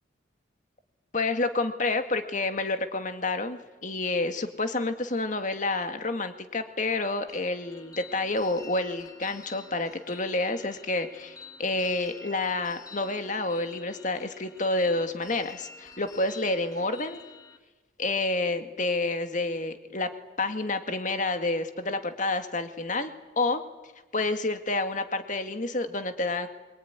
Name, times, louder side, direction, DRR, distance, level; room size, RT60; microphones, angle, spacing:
voice 1, 1.1-17.2 18.0-20.1 20.4-23.6 24.1-26.5, left 2 dB, 40° left, 7 dB, 2.1 m, -29 dB
sound 1, 7.3-17.6, left 5 dB, 20° left, 2.5 m, -49 dB
25.0 x 23.0 x 9.7 m, 1.2 s
head